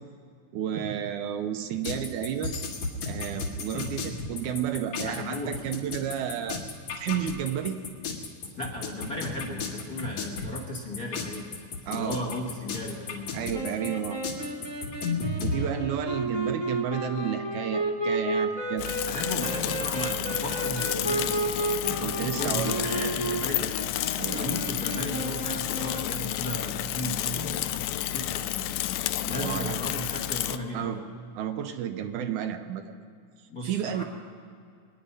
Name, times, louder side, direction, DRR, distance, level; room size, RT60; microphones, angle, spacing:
voice 1, 0.5-2.5 3.1-6.6 6.9-7.8 11.9-12.2 13.3-14.2 15.4-18.9 22.0-23.1 24.2-24.5 29.2-29.8 30.7-31.0 31.4-32.9 33.6-34.0, right 9 dB, 80° right, 7 dB, 2.2 m, -31 dB
sound 1, 1.8-15.6, left 4 dB, 70° left, 3.1 m, -34 dB
voice 2, 3.7-4.2 5.0-5.7 8.6-11.5 11.9-13.8 19.0-23.9 24.3-28.7 29.3-31.0 33.5-34.0, left 1 dB, 45° left, -1 dB, 1.3 m, -35 dB
sound 2, 13.5-26.1, right 2 dB, 15° right, 1.0 m, -32 dB
Bicycle / Mechanisms, 18.8-30.6, left 13 dB, 85° left, 2.1 m, -31 dB
22.5 x 10.5 x 5.4 m, 2.2 s
omnidirectional pair, 3.7 m